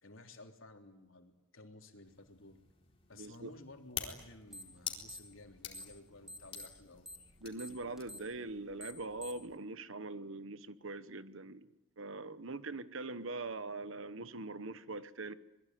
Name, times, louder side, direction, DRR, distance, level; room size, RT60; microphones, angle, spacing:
voice 1, 0.0-2.6 3.1-7.4, left 2 dB, 75° left, 3.5 m, -55 dB
sound 1, 2.0-8.3, left 7 dB, 25° left, 4.2 m, -48 dB
voice 2, 3.2-3.5 7.4-15.3, right 3 dB, 75° right, 1.2 m, -42 dB
sound 2, 4.5-4.8 5.0-6.0 6.3-9.5, equal, ahead, 1.6 m, -48 dB
26.5 x 21.5 x 9.4 m
head